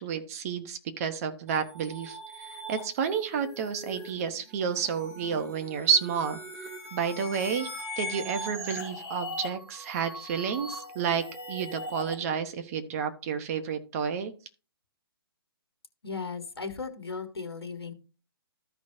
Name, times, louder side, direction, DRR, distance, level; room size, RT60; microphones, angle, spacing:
voice 1, 0.0-6.4 6.9-7.7 8.0-14.3, right 7 dB, 35° right, 8 dB, 1.2 m, -30 dB
sound 1, 1.5-12.1, equal, 15° right, 2.4 m, -41 dB
voice 2, 16.0-17.9, left 4 dB, 80° left, 8 dB, 1.4 m, -36 dB
14.0 x 5.2 x 2.7 m, 0.35 s
figure-of-eight pair, 135°, 13 cm